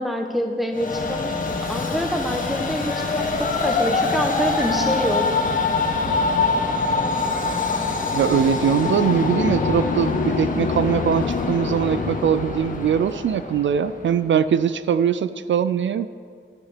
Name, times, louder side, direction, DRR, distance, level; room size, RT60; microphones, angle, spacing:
voice 1, 0.0-1.4 1.7-5.3, equal, ahead, 4 dB, 1.5 m, -26 dB
Train, 0.7-14.2, left 3 dB, 40° left, 1.8 m, -25 dB
sound 1, 8.1-13.1, left 6 dB, 65° left, 0.6 m, -28 dB
voice 2, 8.1-16.1, right 8 dB, 70° right, 13 dB, 0.4 m, -21 dB
11.5 x 10.5 x 6.7 m, 2.1 s
wide cardioid pair, 90°, 20 cm